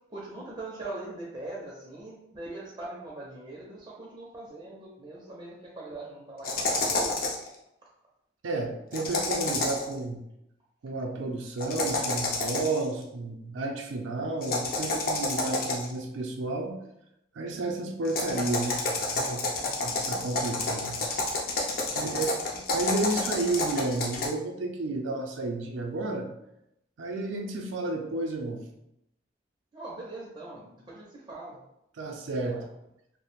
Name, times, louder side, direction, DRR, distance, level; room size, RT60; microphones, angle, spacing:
voice 1, 0.1-7.3 19.6-19.8 21.8-22.3 29.7-31.6 32.4-32.6, right 2 dB, 25° right, -5 dB, 0.4 m, -42 dB
sound 1, 6.4-7.5 8.9-9.9 11.6-12.8 14.4-16.0 18.0-24.3, left 2 dB, 50° left, 0.4 m, -29 dB
voice 2, 8.4-10.2 10.8-16.8 17.4-19.4 19.8-21.0 22.0-22.3 22.5-26.3 27.0-28.7 32.0-32.6, right 2 dB, 80° right, 2 dB, 0.4 m, -32 dB
2.4 x 2.0 x 3.0 m, 0.81 s
head